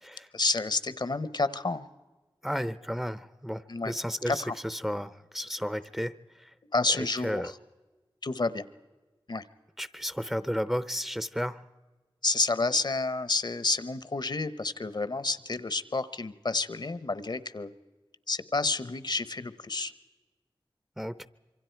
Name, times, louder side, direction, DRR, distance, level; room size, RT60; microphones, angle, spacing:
voice 1, 0.3-1.9 3.7-3.9 4.3-4.5 6.7-7.5 8.2-8.6 9.3-9.4 12.2-17.7 18.3-19.9, left 3 dB, 55° left, 15 dB, 0.9 m, -29 dB
voice 2, 2.4-6.5 6.9-7.0 7.2-7.5 9.8-11.6 21.0-21.3, equal, 5° right, 15 dB, 0.7 m, -33 dB
27.0 x 24.0 x 4.6 m, 1.2 s
wide cardioid pair, 55°, 9 cm